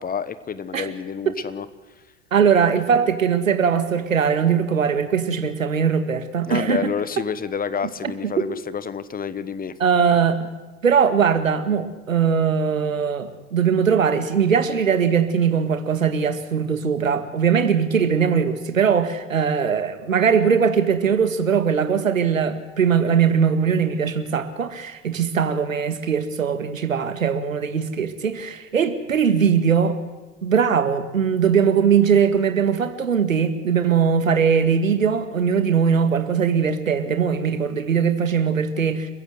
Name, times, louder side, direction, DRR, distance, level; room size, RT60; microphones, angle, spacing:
voice 1, 0.0-1.7 6.5-9.8, left 6 dB, 20° left, 16 dB, 1.3 m, -29 dB
voice 2, 2.3-6.9 8.4-8.5 9.8-10.5 10.8-30.0 30.4-39.1, right 7 dB, 80° right, 10 dB, 1.9 m, -20 dB
29.5 x 15.5 x 7.9 m, 1.2 s
figure-of-eight pair, 80°, 39 cm